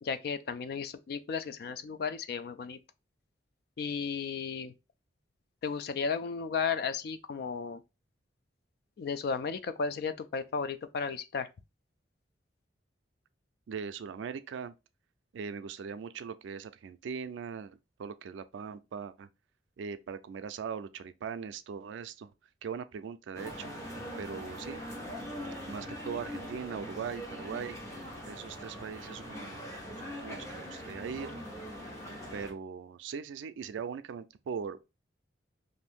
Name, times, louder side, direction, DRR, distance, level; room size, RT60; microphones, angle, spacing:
voice 1, 0.0-2.8 3.8-4.7 5.6-7.8 9.0-11.5, left 5 dB, 55° left, 0.3 m, -34 dB
voice 2, 13.7-14.7 15.3-19.3 19.8-22.3 22.6-23.7 24.2-24.8 25.7-27.8 28.3-29.6 30.0-31.3 32.3-34.8, right 6 dB, 80° right, 0.3 m, -40 dB
sound 1, 23.3-32.5, equal, 15° left, 0.8 m, -42 dB
2.6 x 2.6 x 3.4 m
head